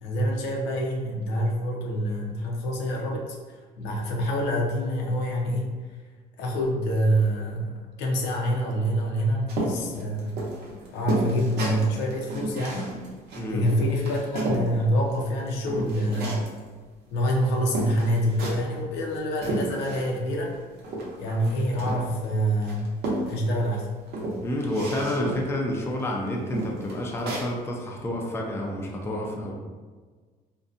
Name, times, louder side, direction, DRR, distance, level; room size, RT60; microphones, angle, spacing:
voice 1, 0.0-5.7 6.4-7.7 8.0-10.4 10.9-12.9 13.5-16.4 17.1-20.6 21.2-22.9 23.3-23.9, equal, 90° left, 0 dB, 0.6 m, -26 dB
sound 1, 9.5-14.7 15.1-16.6 17.3-17.4 17.7-18.7 19.1-20.3 20.5-22.2 22.6-23.7 24.1-25.6 26.0-26.1 26.5-27.5, right 2 dB, 75° right, 0.7 m, -32 dB
voice 2, 13.4-13.7 24.4-29.5, left 1 dB, 15° left, -1 dB, 0.4 m, -29 dB
2.6 x 2.2 x 2.5 m, 1.4 s
cardioid pair, 110°, 17 cm